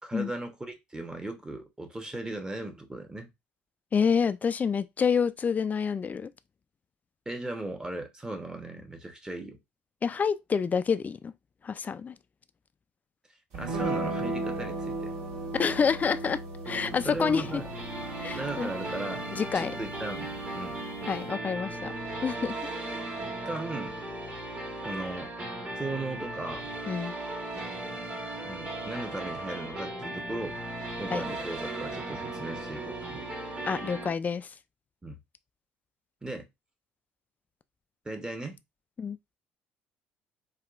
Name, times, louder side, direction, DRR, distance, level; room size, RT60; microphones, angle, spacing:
voice 1, 0.0-3.3 7.2-9.6 13.5-15.1 17.0-17.7 18.3-19.2 19.5-20.8 23.4-24.0 24.8-25.3 25.8-26.7 28.4-33.3 35.0-35.2 36.2-36.5 38.0-38.6, right 2 dB, 15° right, 1.0 m, -37 dB
voice 2, 3.9-6.3 10.0-11.3 11.6-12.1 15.5-17.6 18.2-18.7 19.3-19.7 21.1-21.9 22.2-22.5 26.9-27.1 31.1-31.2 33.6-34.5 39.0-39.2, left 6 dB, 30° left, 0.3 m, -28 dB
sound 1, 13.5-21.3, right 2 dB, 65° right, 1.7 m, -37 dB
sound 2, 16.7-34.1, right 1 dB, 30° right, 1.4 m, -37 dB
3.5 x 2.4 x 2.4 m
hypercardioid pair, 60°, 5 cm